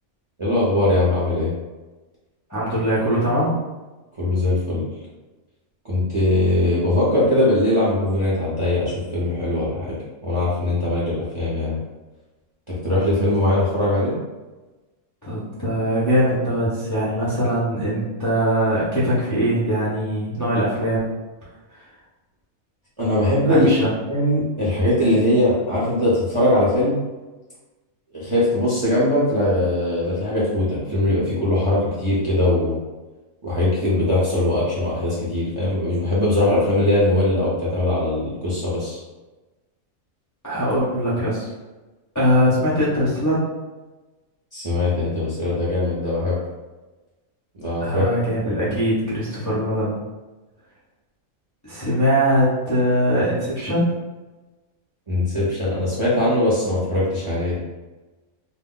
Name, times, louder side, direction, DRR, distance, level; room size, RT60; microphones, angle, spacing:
voice 1, 0.4-1.5 4.2-4.9 5.8-10.0 10.2-11.8 12.7-14.1 23.0-23.7 24.1-27.0 28.1-32.8 33.4-39.0 44.5-46.4 47.5-48.6 55.1-57.6, left 1 dB, 35° right, -8 dB, 0.5 m, -21 dB
voice 2, 2.5-3.5 15.2-21.1 23.5-23.9 40.4-41.5 42.1-43.4 47.8-50.0 51.6-53.9, equal, 25° left, -9 dB, 0.4 m, -21 dB
2.3 x 2.1 x 3.6 m, 1.2 s
omnidirectional pair, 1.4 m